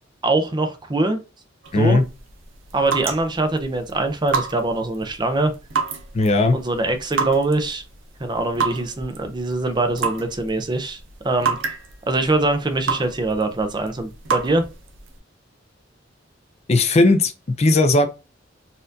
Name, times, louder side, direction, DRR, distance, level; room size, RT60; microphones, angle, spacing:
voice 1, 0.2-1.2 1.7-2.0 2.7-5.5 6.5-7.8 8.2-11.0 11.2-11.6 12.1-14.6, right 2 dB, 25° right, 0.5 m, -23 dB
sound 1, 1.6-15.2, right 5 dB, 80° right, 0.7 m, -30 dB
voice 2, 1.7-2.1 6.1-6.6 16.7-18.1, left 2 dB, 35° left, 0.4 m, -17 dB
4.2 x 2.5 x 2.6 m
head